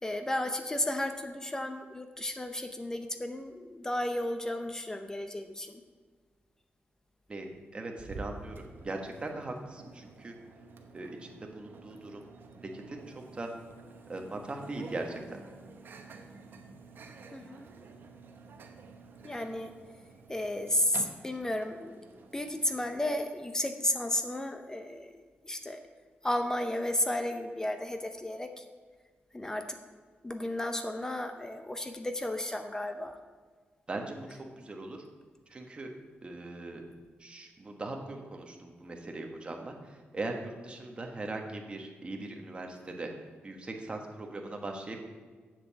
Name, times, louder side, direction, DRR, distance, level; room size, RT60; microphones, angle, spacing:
voice 1, 0.0-5.8 17.3-17.7 19.2-19.7 20.3-21.9 22.3-25.1 25.4-25.8 26.2-28.6 29.3-29.8 30.2-33.2, left 1 dB, 15° left, 7 dB, 0.7 m, -33 dB
voice 2, 7.3-10.3 10.9-12.2 12.6-13.0 13.3-13.5 14.1-15.4 33.9-35.0 35.5-35.9 36.2-36.8 37.2-43.1 43.4-45.0, right 2 dB, 25° right, 2 dB, 1.4 m, -40 dB
Microwave oven, 8.0-23.1, right 3 dB, 60° right, 1.0 m, -50 dB
7.8 x 7.6 x 7.1 m, 1.5 s
wide cardioid pair, 130°, 4 cm